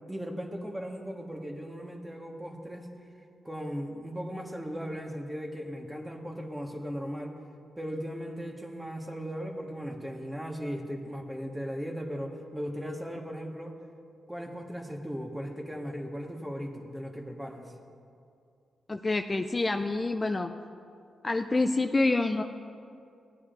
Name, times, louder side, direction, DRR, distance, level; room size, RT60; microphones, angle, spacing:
voice 1, 0.1-2.9 3.4-7.3 7.8-13.8 14.3-17.7, equal, 10° right, 2 dB, 1.5 m, -37 dB
voice 2, 18.9-20.5 21.2-22.4, left 2 dB, 30° left, 6 dB, 0.4 m, -27 dB
17.5 x 9.5 x 2.6 m, 2.5 s
supercardioid pair, 55°, 0 cm